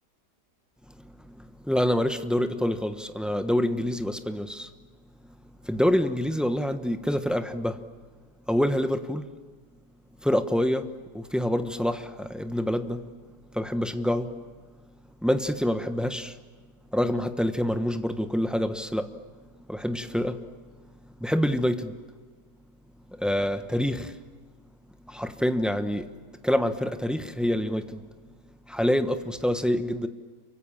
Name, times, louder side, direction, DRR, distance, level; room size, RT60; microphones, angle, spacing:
voice 1, 1.0-4.7 5.6-7.8 8.5-9.3 10.2-13.1 13.5-14.4 15.2-16.3 16.9-19.2 19.7-20.4 21.2-22.0 23.1-24.1 25.1-26.1 26.4-28.0 28.7-30.1, equal, ahead, 0.9 m, -26 dB
29.0 x 24.5 x 7.4 m
omnidirectional pair, 1.9 m